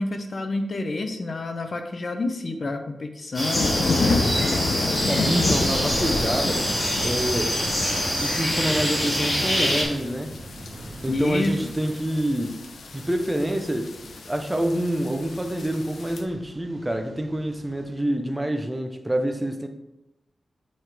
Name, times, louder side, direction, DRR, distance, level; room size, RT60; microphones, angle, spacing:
voice 1, 0.0-4.3 11.1-11.5, left 2 dB, 40° left, 6 dB, 0.6 m, -28 dB
sound 1, 3.3-9.8, equal, 25° left, 2.2 m, -25 dB
sound 2, 3.5-16.2, left 3 dB, 85° left, 0.7 m, -31 dB
sound 3, 3.7-17.8, right 1 dB, 30° right, 1.9 m, -40 dB
voice 2, 5.0-6.7 7.0-7.6 7.9-10.4 11.0-12.7 12.9-19.7, right 1 dB, 10° right, 5 dB, 0.6 m, -27 dB
7.8 x 4.7 x 3.4 m, 0.95 s
wide cardioid pair, 160°, 0 cm